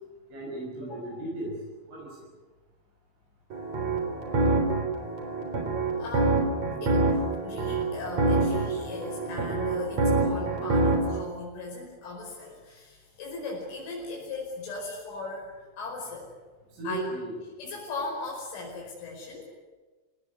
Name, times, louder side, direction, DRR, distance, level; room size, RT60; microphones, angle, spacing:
voice 1, 0.3-1.6 1.9-2.3 16.7-17.4, right 2 dB, 80° right, -4 dB, 8.7 m, -35 dB
voice 2, 0.8-1.2 6.0-7.0 7.4-16.3 16.8-17.1 17.6-19.4, left 3 dB, 80° left, -2 dB, 7.6 m, -38 dB
sound 1, 3.5-11.2, right 2 dB, 35° right, 4.4 m, -26 dB
25.0 x 19.5 x 9.7 m, 1.3 s
omnidirectional pair, 5.5 m